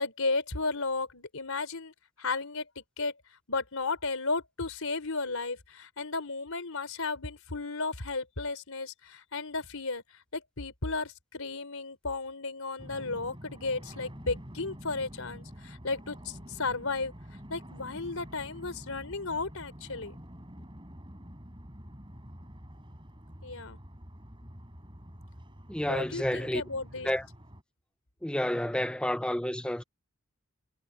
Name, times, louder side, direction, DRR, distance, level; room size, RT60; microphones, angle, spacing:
voice 1, 0.0-1.9 2.2-3.1 3.5-17.1 17.5-20.2 23.4-23.8 25.9-27.1, left 3 dB, 85° left, 3.8 m, -34 dB
sound 1, 12.8-27.6, equal, 25° right, 7.4 m, -47 dB
voice 2, 25.7-26.6 27.0-27.3 28.2-29.8, left 1 dB, 5° left, 0.6 m, -30 dB
head